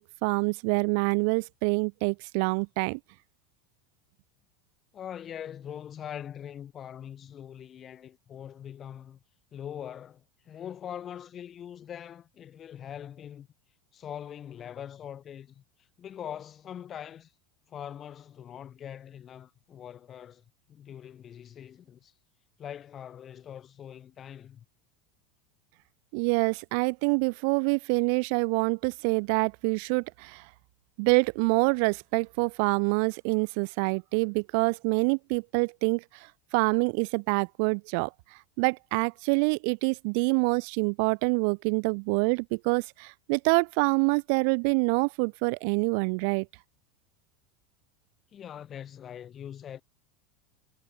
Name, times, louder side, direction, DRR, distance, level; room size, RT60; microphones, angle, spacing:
voice 1, 0.0-3.0 26.1-30.4 31.0-36.0 36.5-38.1 38.6-46.5, right 37 dB, 65° right, 1.7 m, -26 dB
voice 2, 4.9-9.2 9.5-13.5 13.9-15.6 16.0-17.3 17.7-22.1 22.6-24.6 48.3-49.8, left 9 dB, 30° left, 7.6 m, -42 dB
supercardioid pair, 135°, 0 cm